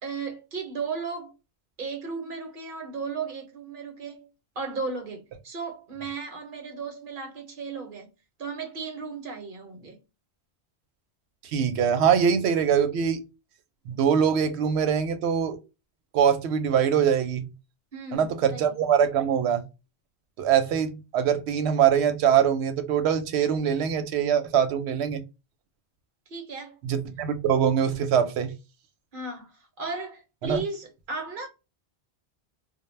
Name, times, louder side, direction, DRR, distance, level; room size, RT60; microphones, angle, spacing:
voice 1, 0.0-1.3 1.8-4.3 4.6-8.1 8.4-10.0 17.9-18.7 26.3-26.8 29.1-31.5, right 4 dB, 55° right, 0.8 m, -35 dB
voice 2, 11.5-13.2 13.9-15.6 16.1-17.4 18.1-19.6 20.4-25.2 26.8-28.5 30.4-30.6, right 8 dB, 85° right, 0.8 m, -23 dB
2.1 x 2.0 x 3.0 m
omnidirectional pair, 1.1 m